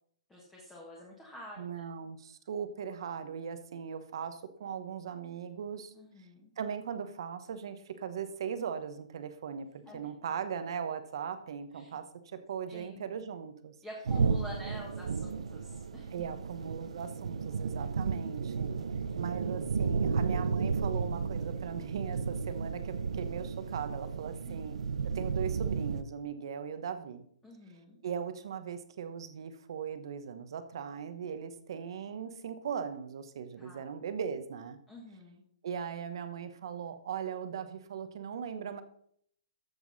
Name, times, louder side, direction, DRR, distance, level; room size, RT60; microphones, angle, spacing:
voice 1, 0.3-1.8 5.9-6.5 9.8-10.1 11.7-12.0 12.7-13.0 13.8-16.1 24.4-24.6 27.4-28.0 33.6-33.8 34.9-35.4, left 1 dB, 5° left, -4 dB, 1.5 m, -48 dB
voice 2, 1.6-5.9 6.6-13.7 16.1-18.7 19.2-24.8 25.1-27.2 28.0-34.8 35.6-38.8, right 7 dB, 45° right, 10 dB, 1.1 m, -39 dB
sound 1, 14.0-26.0, right 5 dB, 80° right, 0.8 m, -33 dB
13.5 x 7.0 x 4.1 m, 0.66 s
hypercardioid pair, 175°, 3 cm